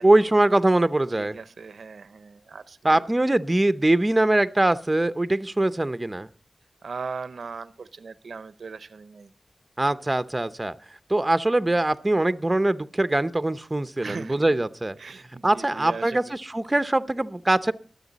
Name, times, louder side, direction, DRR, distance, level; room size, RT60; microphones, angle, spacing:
voice 1, 0.0-1.4 2.8-6.3 9.8-10.7 11.1-15.0 15.4-17.7, right 2 dB, 25° right, 12 dB, 0.7 m, -22 dB
voice 2, 1.2-3.0 6.8-9.3 14.0-14.6 15.0-16.4, right 5 dB, 90° right, 14 dB, 0.7 m, -39 dB
23.0 x 8.2 x 4.0 m, 0.39 s
wide cardioid pair, 75°, 0 cm